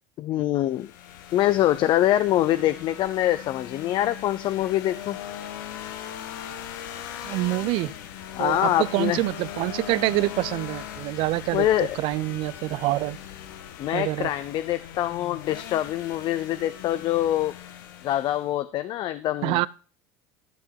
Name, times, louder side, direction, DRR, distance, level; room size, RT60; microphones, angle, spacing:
voice 1, 0.2-0.9 1.3-5.2 8.4-9.2 11.5-12.0 13.8-17.5 18.0-19.6, left 13 dB, 45° left, 0.6 m, -24 dB
sound 1, 0.7-18.5, left 10 dB, 85° left, 1.5 m, -39 dB
voice 2, 7.2-7.9 8.4-13.2 13.9-14.3 19.4-19.7, right 19 dB, 55° right, 0.5 m, -26 dB
14.0 x 6.2 x 4.6 m
supercardioid pair, 130°, 11 cm